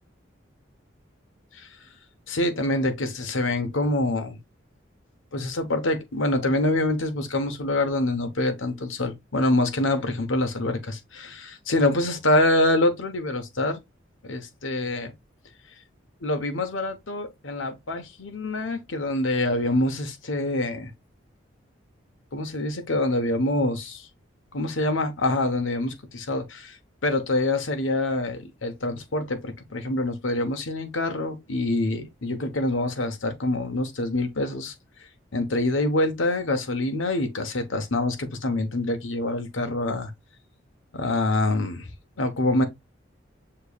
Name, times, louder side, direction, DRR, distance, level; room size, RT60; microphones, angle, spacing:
voice 1, 2.3-4.4 5.3-13.8 14.2-15.1 16.2-20.9 22.3-24.0 24.5-26.7 27.0-34.7 35.3-40.1 40.9-41.9 42.2-42.6, left 2 dB, 90° left, 1.0 m, -25 dB
6.7 x 3.1 x 2.3 m
head